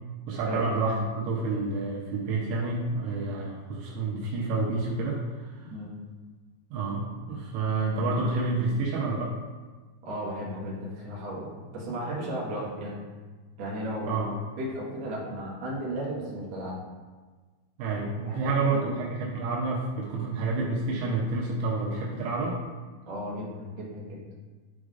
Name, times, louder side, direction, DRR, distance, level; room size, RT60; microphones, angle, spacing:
voice 1, 0.3-5.7 6.7-9.3 14.1-14.4 17.8-22.6, right 3 dB, 85° right, -4 dB, 3.5 m, -29 dB
voice 2, 10.0-13.0 13.6-14.2 14.6-16.8 18.2-18.9 23.1-24.2, equal, 60° right, -6 dB, 2.4 m, -35 dB
11.5 x 4.8 x 2.5 m, 1.4 s
omnidirectional pair, 5.7 m